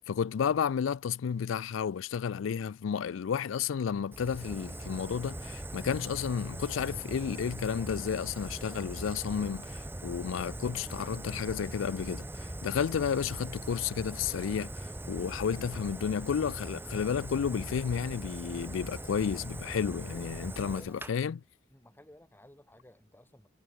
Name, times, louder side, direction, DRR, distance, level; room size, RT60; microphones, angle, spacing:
voice 1, 0.0-20.8 21.1-21.4, left 7 dB, 80° left, 0.4 m, -32 dB
sound 1, 3.1-21.1, right 1 dB, 35° right, 3.3 m, -72 dB
Fire, 4.1-21.1, right 1 dB, 10° right, 0.8 m, -41 dB
voice 2, 20.4-21.0 21.7-23.5, left 1 dB, 10° left, 2.1 m, -56 dB
head